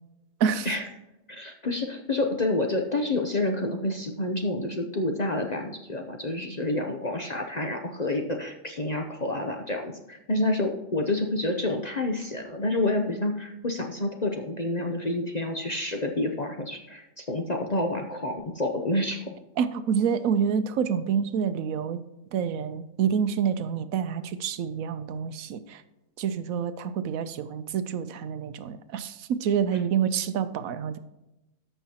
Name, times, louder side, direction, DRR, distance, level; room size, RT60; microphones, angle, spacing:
voice 1, 1.3-19.3, left 2 dB, 40° left, 3 dB, 0.6 m, -28 dB
voice 2, 19.6-22.0 22.3-25.8 26.2-31.0, right 7 dB, 75° right, 12 dB, 1.0 m, -27 dB
13.5 x 5.5 x 2.9 m, 0.97 s
omnidirectional pair, 1.5 m